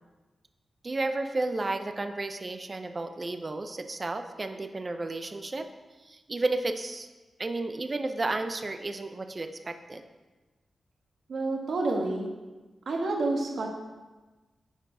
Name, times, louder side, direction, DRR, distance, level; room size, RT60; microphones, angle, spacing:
voice 1, 0.8-5.7 6.0-7.1 7.4-10.0, right 2 dB, 35° right, 8 dB, 0.7 m, -32 dB
voice 2, 11.3-12.3 12.9-13.7, right 2 dB, 70° right, 1 dB, 1.4 m, -28 dB
10.5 x 4.4 x 4.9 m, 1.2 s
cardioid pair, 75°, 0 cm